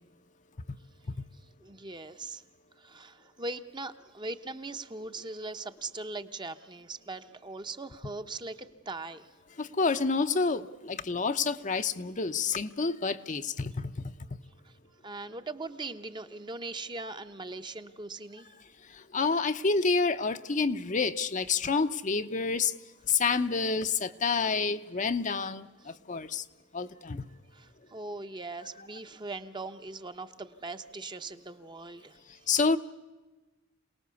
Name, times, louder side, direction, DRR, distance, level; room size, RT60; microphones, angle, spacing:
voice 1, 1.6-2.4 2.8-9.2 14.6-14.7 15.0-18.5 27.5-32.5, right 3 dB, 25° right, 9 dB, 0.8 m, -40 dB
voice 2, 9.6-14.0 19.1-22.7 23.1-26.4 26.7-27.2 32.5-32.8, left 4 dB, 40° left, 9 dB, 0.7 m, -28 dB
27.0 x 19.0 x 7.0 m, 1.2 s
head